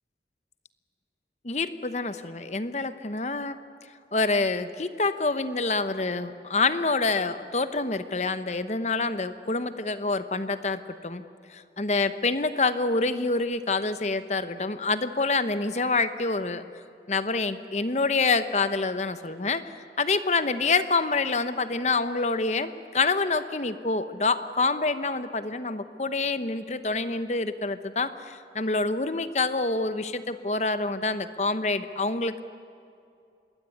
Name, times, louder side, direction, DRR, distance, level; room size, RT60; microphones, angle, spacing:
voice 1, 1.4-3.6 4.1-11.2 11.5-16.6 17.1-19.6 20.0-32.4, left 3 dB, 40° left, 11 dB, 1.0 m, -27 dB
25.5 x 21.0 x 9.5 m, 2.5 s
head